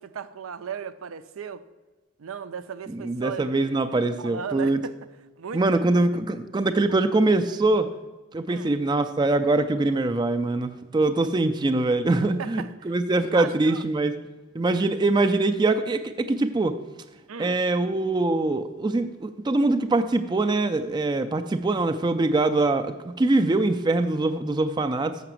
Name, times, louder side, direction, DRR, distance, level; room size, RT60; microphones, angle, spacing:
voice 1, 0.0-1.6 2.2-3.5 3.9-4.9 5.4-5.8 6.6-6.7 8.5-8.8 12.2-13.8 17.3-17.6, right 7 dB, 80° right, 0.5 m, -37 dB
voice 2, 2.9-4.8 5.5-7.9 8.3-14.2 14.5-16.8 17.4-25.2, right 2 dB, 20° right, 0.3 m, -23 dB
6.8 x 5.9 x 7.4 m
head